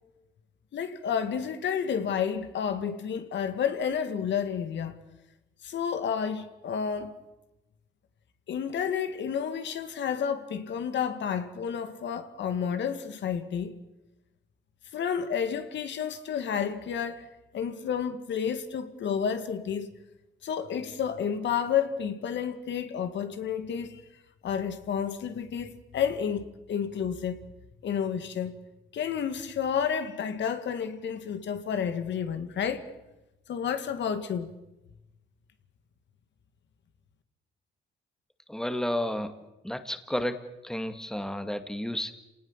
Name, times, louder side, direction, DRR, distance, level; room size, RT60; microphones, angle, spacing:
voice 1, 0.7-4.9 5.6-7.2 8.5-13.8 14.9-19.9 20.4-24.0 24.4-27.4 27.8-28.5 28.9-32.9 33.5-34.5, left 7 dB, 65° left, 2.1 m, -30 dB
voice 2, 38.5-39.3 39.6-42.1, left 1 dB, 5° left, 2.1 m, -32 dB
28.0 x 19.0 x 7.4 m
cardioid pair, 90°, 20 cm